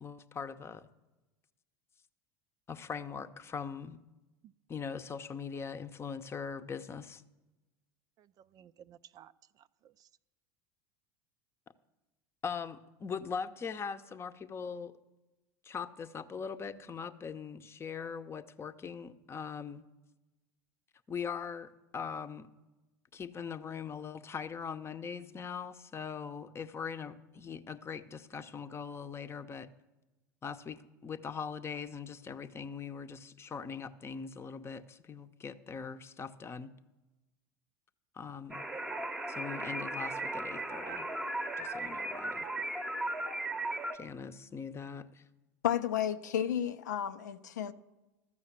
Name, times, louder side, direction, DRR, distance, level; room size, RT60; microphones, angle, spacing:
voice 1, 0.0-0.9 2.7-4.0 4.7-7.2 12.4-14.9 15.6-19.8 21.1-22.5 23.1-29.7 30.4-36.7 38.1-38.6 39.3-41.1 41.6-42.5 43.9-45.2, left 6 dB, 25° left, 0.8 m, -41 dB
voice 2, 8.2-10.1, right 10 dB, 40° right, 0.4 m, -58 dB
sound 1, 38.5-44.0, right 2 dB, 10° right, 0.9 m, -36 dB
voice 3, 45.6-47.7, left 10 dB, 80° left, 0.5 m, -32 dB
13.5 x 6.4 x 7.3 m
hypercardioid pair, 75°, 9 cm